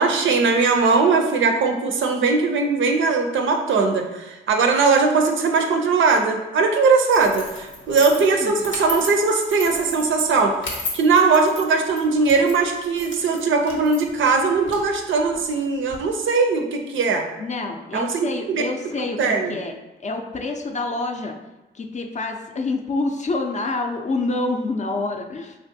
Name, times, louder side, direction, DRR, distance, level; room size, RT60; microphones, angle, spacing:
voice 1, 0.0-17.2 17.9-18.6 18.9-19.6, right 4 dB, 75° right, 4 dB, 0.5 m, -20 dB
sound 1, 7.1-16.0, left 3 dB, 75° left, 0.7 m, -36 dB
voice 2, 8.1-8.7 17.4-19.2 19.5-19.8 20.0-21.4 21.7-25.6, left 3 dB, 35° left, 4 dB, 0.4 m, -27 dB
3.2 x 2.5 x 2.6 m, 1.1 s
cardioid pair, 50°, 20 cm